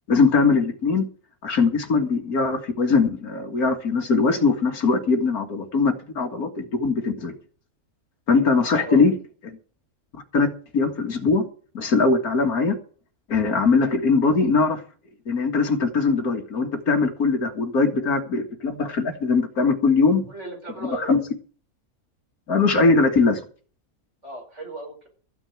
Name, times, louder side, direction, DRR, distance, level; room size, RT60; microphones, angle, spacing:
voice 1, 0.1-1.1 1.4-7.4 8.3-9.1 10.3-11.4 11.7-12.8 13.3-14.8 15.3-20.2 20.8-21.2 22.5-23.4, left 4 dB, 85° left, 2.4 m, -21 dB
voice 2, 8.7-9.1 20.3-21.2 24.2-25.1, right 2 dB, 50° right, 5.2 m, -37 dB
14.5 x 6.3 x 8.7 m
omnidirectional pair, 1.5 m